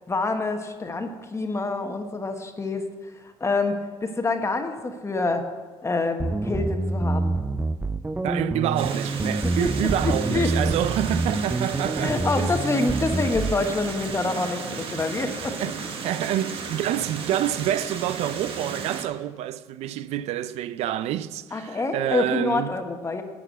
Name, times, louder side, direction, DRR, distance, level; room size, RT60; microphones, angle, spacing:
voice 1, 0.1-3.7 4.0-5.4 5.8-7.4 9.4-9.7 10.0-10.5 12.0-15.5 21.5-23.2, left 3 dB, 25° left, 1.1 m, -27 dB
sound 1, 6.2-13.6, right 2 dB, 15° right, 0.4 m, -27 dB
voice 2, 8.2-12.6 15.6-22.7, right 12 dB, 70° right, 0.5 m, -27 dB
sound 2, 8.8-19.1, right 5 dB, 55° right, 1.4 m, -34 dB
12.0 x 4.8 x 8.2 m
supercardioid pair, 80°, 11 cm